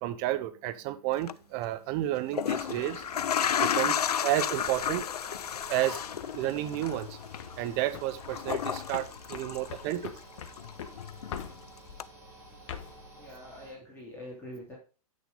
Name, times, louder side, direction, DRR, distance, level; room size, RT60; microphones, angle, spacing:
voice 1, 0.0-3.0 3.6-5.0 5.7-6.0 6.3-7.1 7.6-10.1, right 14 dB, 35° right, 0.8 m, -31 dB
sound 1, 1.1-1.3 2.2-10.2 10.5-11.6 12.0-12.1, left 9 dB, 85° left, 0.4 m, -32 dB
sound 2, 2.5-13.7, right 1 dB, 15° right, 5.0 m, -52 dB
sound 3, 4.5-6.4 6.7-7.0 7.3-7.6 7.9-12.0 12.5-13.0, left 8 dB, 55° left, 1.3 m, -43 dB
voice 2, 13.1-14.8, left 1 dB, 10° left, 3.0 m, -44 dB
8.0 x 6.4 x 3.8 m
hypercardioid pair, 120°, 19 cm